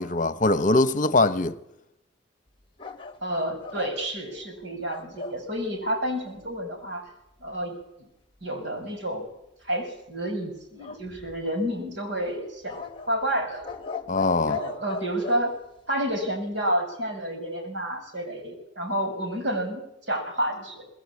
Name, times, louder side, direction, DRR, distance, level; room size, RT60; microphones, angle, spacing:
voice 1, 0.0-1.6 14.1-14.6, left 2 dB, 45° left, 1.0 m, -22 dB
sound 1, 2.8-5.4 10.8-11.7 12.7-15.4, left 5 dB, 25° left, 1.3 m, -38 dB
voice 2, 3.2-7.1 7.4-8.1 8.4-9.3 9.6-13.7 14.5-15.5 15.9-20.9, right 1 dB, 75° right, 6.9 m, -30 dB
25.0 x 20.0 x 8.5 m
head